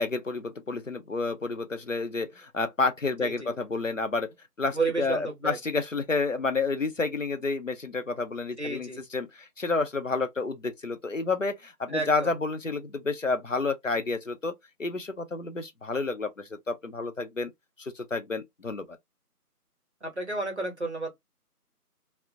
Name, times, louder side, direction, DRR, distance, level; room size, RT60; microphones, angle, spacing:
voice 1, 0.0-4.3 4.6-14.5 14.8-17.5 17.8-18.8, left 3 dB, 55° left, 0.5 m, -30 dB
voice 2, 3.2-3.5 4.7-5.6 8.6-9.0 11.9-12.3 20.0-21.1, right 3 dB, 45° right, 0.8 m, -31 dB
2.3 x 2.0 x 2.5 m
figure-of-eight pair, 175°, 47 cm